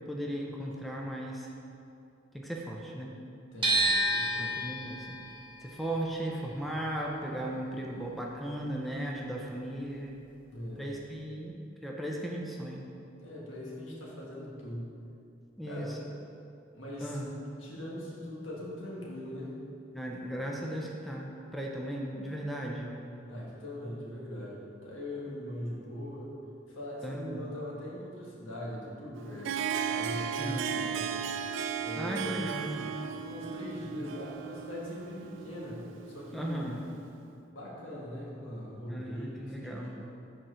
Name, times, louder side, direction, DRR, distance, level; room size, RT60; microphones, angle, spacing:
voice 1, 0.1-1.5 2.3-3.1 4.4-5.2 5.6-10.2 10.8-12.9 15.6-16.1 17.0-17.3 19.9-23.0 27.0-27.5 30.4-30.7 32.0-33.0 36.3-36.8 38.9-40.0, right 1 dB, ahead, -2 dB, 0.6 m, -37 dB
voice 2, 3.5-4.6 10.5-10.8 13.2-15.0 15.7-16.0 16.7-17.2 17.6-19.6 23.2-26.3 26.6-29.6 29.8-31.1 31.8-32.4 33.1-36.8 37.5-40.1, equal, 85° left, -5 dB, 1.5 m, -41 dB
sound 1, 3.6-9.7 9.9-11.2, right 1 dB, 25° right, 1.0 m, -32 dB
Harp, 29.2-36.9, right 7 dB, 70° right, 0.3 m, -36 dB
5.2 x 4.3 x 6.1 m, 2.6 s
head